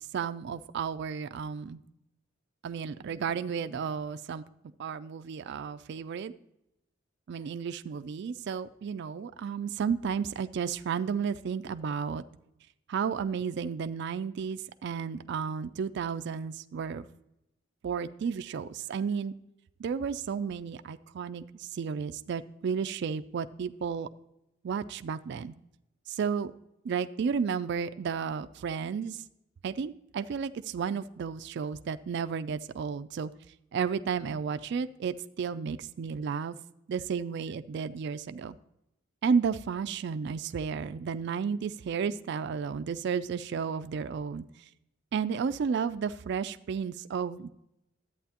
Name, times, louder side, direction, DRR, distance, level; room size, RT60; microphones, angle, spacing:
voice 1, 0.1-1.8 2.6-4.4 4.8-6.3 7.3-12.2 12.9-17.1 17.8-19.3 19.8-24.1 24.6-25.5 26.1-26.5 26.8-29.2 29.6-33.3 33.7-36.6 36.9-38.6 39.2-44.4 45.1-47.5, right 6 dB, 60° right, 11 dB, 0.3 m, -32 dB
11.0 x 8.4 x 2.9 m, 0.85 s
head